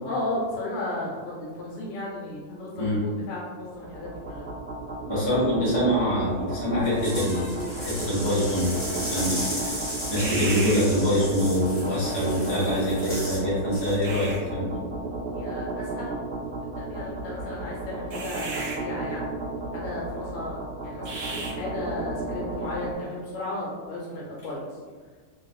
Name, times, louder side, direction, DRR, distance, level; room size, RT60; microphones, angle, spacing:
voice 1, 0.0-4.5 15.3-16.2 16.6-19.3 19.7-24.7, left 2 dB, 80° left, -5 dB, 1.8 m, -34 dB
sound 1, 3.7-22.9, right 3 dB, 80° right, 0.9 m, -33 dB
voice 2, 5.1-8.8 9.1-9.8 10.1-14.8, equal, 20° left, -9 dB, 0.7 m, -25 dB
sound 2, 6.8-13.4 13.7-14.0, equal, 45° left, 1.1 m, -35 dB
3.4 x 3.0 x 2.3 m, 1.5 s
omnidirectional pair, 2.4 m